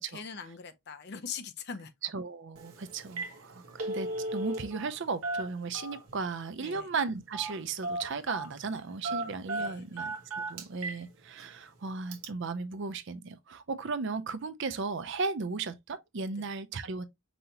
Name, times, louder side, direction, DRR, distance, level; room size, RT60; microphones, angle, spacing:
voice 1, 0.1-1.9 6.6-6.9 9.1-10.2 16.4-16.5, left 6 dB, 50° left, 0.6 m, -43 dB
voice 2, 2.0-17.0, right 4 dB, 55° right, 0.5 m, -36 dB
Telephone, 2.6-2.7 3.0-3.4 3.6-4.9 5.2-6.2 7.3-7.6 7.8-8.5 9.0-11.0 11.4-11.5 12.1-12.3, right 2 dB, 80° right, 1.1 m, -35 dB
5.4 x 2.9 x 2.8 m
head